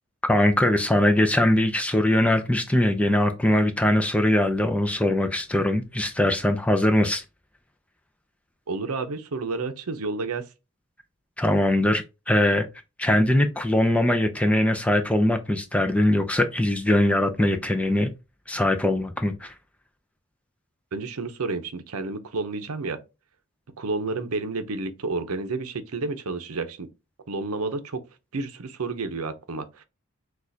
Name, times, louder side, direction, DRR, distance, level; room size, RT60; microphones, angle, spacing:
voice 1, 0.3-7.2 11.4-12.7 13.0-18.1 18.5-19.5, left 1 dB, 5° left, 0.4 m, -21 dB
voice 2, 8.7-10.5 20.9-23.0 23.8-26.9 27.3-28.0 28.3-29.8, right 3 dB, 90° right, 0.7 m, -30 dB
6.2 x 2.4 x 2.7 m
head